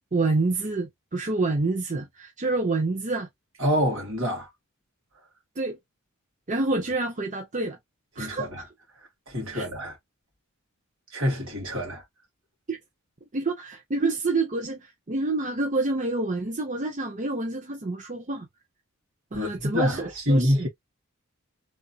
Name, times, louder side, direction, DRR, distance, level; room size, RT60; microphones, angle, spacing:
voice 1, 0.1-3.3 5.6-5.8 6.5-7.8 8.2-8.7 9.5-9.7 12.7-12.8 13.3-18.5 19.3-20.7, right 3 dB, 35° right, 0.8 m, -27 dB
voice 2, 3.6-4.5 8.2-8.6 9.3-10.0 11.1-12.0 19.3-20.7, equal, 65° right, 1.9 m, -26 dB
3.5 x 2.7 x 2.3 m
head